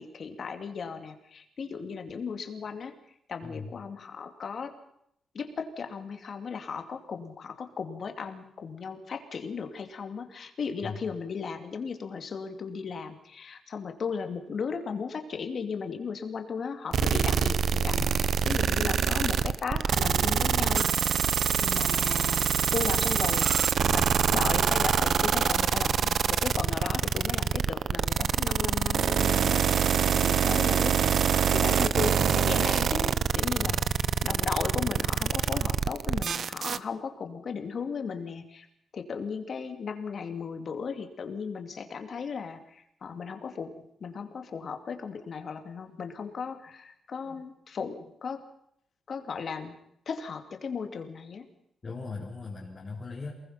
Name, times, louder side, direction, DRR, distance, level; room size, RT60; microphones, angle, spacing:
voice 1, 0.0-2.9 3.3-4.7 5.3-18.0 18.5-20.9 21.6-23.5 23.9-31.0 31.5-33.8 34.2-38.7 38.9-43.8 44.0-48.4 49.1-49.7 50.1-51.5, left 5 dB, 45° left, 7 dB, 2.6 m, -36 dB
voice 2, 3.4-3.7 10.8-11.0 18.0-18.1 18.8-18.9 23.8-24.1 33.6-33.9 51.8-53.3, left 4 dB, 25° left, -4 dB, 4.2 m, -38 dB
sound 1, 16.9-36.8, right 7 dB, 50° right, 0.8 m, -25 dB
28.5 x 21.0 x 5.8 m, 0.73 s
wide cardioid pair, 170°, 0 cm